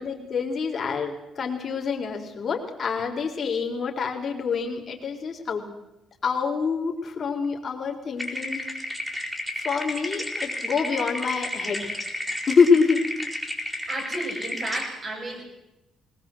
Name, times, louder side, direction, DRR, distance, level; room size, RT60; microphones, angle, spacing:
voice 1, 0.0-5.7 6.2-8.6 9.6-11.9 12.5-13.0, left 5 dB, 45° left, 2 dB, 4.2 m, -26 dB
sound 1, 8.2-14.9, left 1 dB, 5° right, 4.8 m, -32 dB
voice 2, 13.9-15.5, right 2 dB, 40° right, -1 dB, 7.7 m, -33 dB
20.5 x 19.5 x 7.9 m, 0.96 s
cardioid pair, 90°, 0 cm